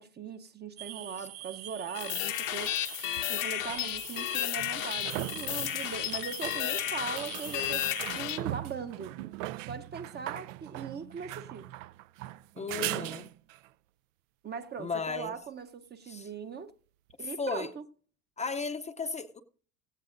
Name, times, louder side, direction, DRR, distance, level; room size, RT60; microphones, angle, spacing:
voice 1, 0.0-7.9 8.1-9.2 9.6-11.7 14.4-16.7 17.2-17.8, right 6 dB, 25° right, 0.7 m, -40 dB
sound 1, 0.8-8.2, right 15 dB, 65° right, 0.8 m, -44 dB
sound 2, 2.0-8.4, left 15 dB, 90° left, 1.3 m, -33 dB
sound 3, 3.2-3.3 4.6-13.7 17.1-17.2, right 16 dB, 85° right, 0.5 m, -40 dB
voice 2, 12.6-13.3 14.8-15.3 16.1-16.3 17.2-17.7 18.4-19.4, left 4 dB, 20° left, 0.6 m, -35 dB
16.5 x 15.5 x 2.5 m
supercardioid pair, 115°, 38 cm